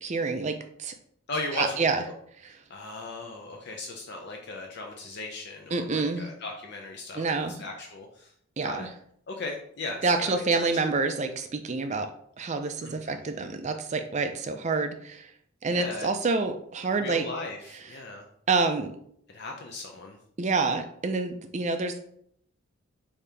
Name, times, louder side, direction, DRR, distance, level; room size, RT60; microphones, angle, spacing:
voice 1, 0.0-0.9 1.6-2.0 5.7-6.2 7.2-7.5 8.6-8.9 10.0-12.1 12.4-15.3 15.6-17.3 18.5-18.9 20.4-21.9, right 4 dB, 30° right, 6 dB, 0.4 m, -27 dB
voice 2, 1.3-1.9 2.5-8.3 8.6-8.9 9.3-10.7 12.8-13.2 15.7-16.1 17.0-18.3 19.3-20.2, left 3 dB, 50° left, 1 dB, 0.5 m, -37 dB
5.2 x 2.8 x 3.4 m, 0.67 s
head